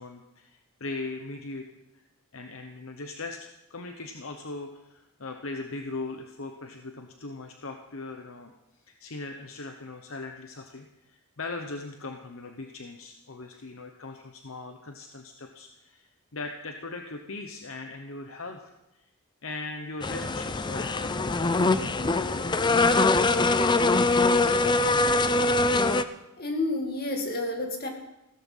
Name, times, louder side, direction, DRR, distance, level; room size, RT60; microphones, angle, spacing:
voice 1, 0.0-1.7 1.9-2.0 2.3-19.0 19.4-24.6, left 3 dB, 65° left, 4 dB, 1.0 m, -40 dB
sound 1, 20.0-26.0, left 3 dB, 20° left, 0.5 m, -23 dB
voice 2, 26.4-27.9, left 2 dB, 45° left, 3 dB, 2.4 m, -30 dB
16.0 x 13.5 x 5.6 m, 0.92 s
head